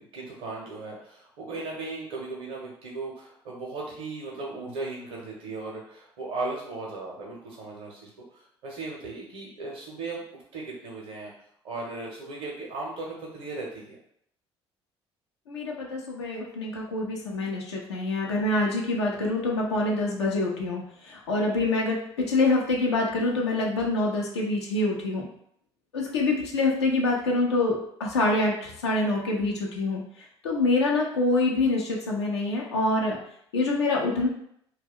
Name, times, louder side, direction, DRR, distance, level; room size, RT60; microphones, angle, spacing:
voice 1, 0.0-11.3 11.6-14.0, right 3 dB, 70° right, -3 dB, 0.6 m, -37 dB
voice 2, 15.5-25.3 25.9-33.2 33.5-34.3, left 2 dB, 80° left, -2 dB, 0.5 m, -26 dB
2.2 x 2.1 x 3.4 m, 0.70 s
figure-of-eight pair, 55°, 14 cm